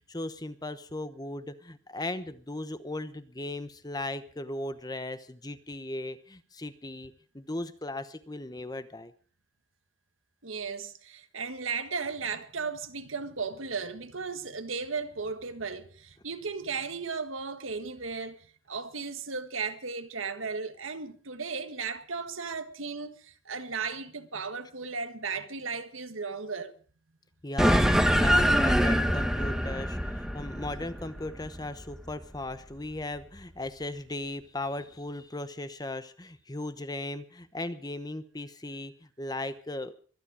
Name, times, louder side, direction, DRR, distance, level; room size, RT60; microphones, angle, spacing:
voice 1, 0.0-9.1 27.4-39.9, left 2 dB, 20° left, 1.0 m, -37 dB
voice 2, 10.4-18.4 18.7-26.7, right 5 dB, 90° right, 1.7 m, -35 dB
sound 1, 27.6-32.3, equal, ahead, 1.1 m, -25 dB
24.0 x 10.0 x 4.8 m
head